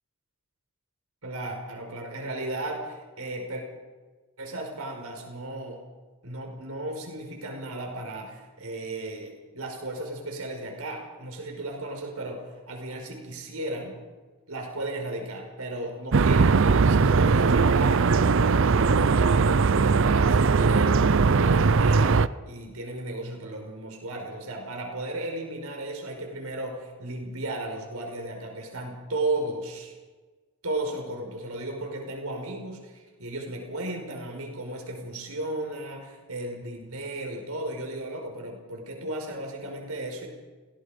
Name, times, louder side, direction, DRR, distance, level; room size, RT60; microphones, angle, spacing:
voice 1, 1.2-3.6 4.4-5.8 6.2-14.0 14.5-16.6 16.9-29.9 30.6-40.3, right 2 dB, 75° right, 2 dB, 5.5 m, -35 dB
sound 1, 16.1-22.3, right 4 dB, 60° right, 0.6 m, -20 dB
27.0 x 19.5 x 5.2 m, 1.3 s
head